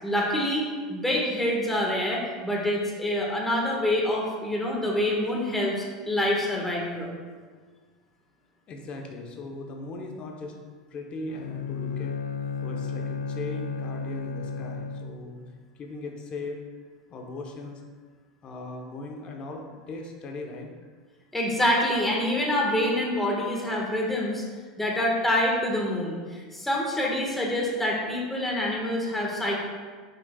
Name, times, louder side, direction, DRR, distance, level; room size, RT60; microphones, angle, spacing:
voice 1, 0.0-7.1 21.3-24.4 24.8-29.7, left 1 dB, 5° left, -3 dB, 1.7 m, -26 dB
voice 2, 8.7-10.5 10.9-12.2 12.6-15.4 15.7-16.6 17.1-17.8 18.4-20.7, left 2 dB, 40° left, 1 dB, 1.2 m, -38 dB
Bowed string instrument, 11.3-15.4, left 5 dB, 85° left, 0.3 m, -33 dB
8.7 x 6.5 x 2.5 m, 1.5 s
hypercardioid pair, 100°, 3 cm